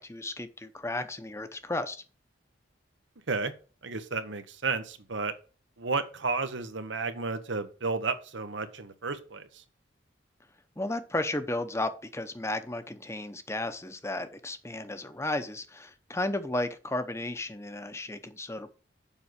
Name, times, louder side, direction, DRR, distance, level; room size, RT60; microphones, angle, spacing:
voice 1, 0.0-2.0 10.8-18.7, left 2 dB, 15° left, 10 dB, 0.7 m, -34 dB
voice 2, 3.8-5.3 5.8-9.6, right 4 dB, 85° right, 9 dB, 1.1 m, -32 dB
7.2 x 5.4 x 6.4 m, 0.36 s
head